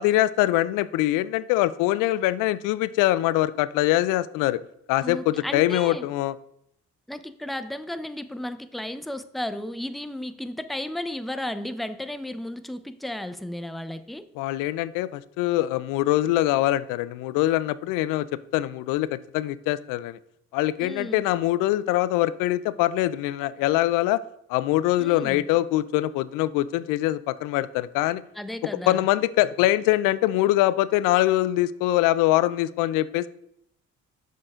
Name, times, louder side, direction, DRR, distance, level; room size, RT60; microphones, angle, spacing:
voice 1, 0.0-4.6 4.9-6.3 14.4-18.3 18.5-20.2 20.5-24.2 24.5-28.2 28.9-33.3, left 15 dB, 85° left, 17 dB, 0.5 m, -23 dB
voice 2, 5.0-6.1 7.1-14.2 20.8-21.3 25.0-25.5 28.4-29.1, left 1 dB, ahead, 11 dB, 0.6 m, -34 dB
7.4 x 6.6 x 3.6 m, 0.75 s
supercardioid pair, 60°, 32 cm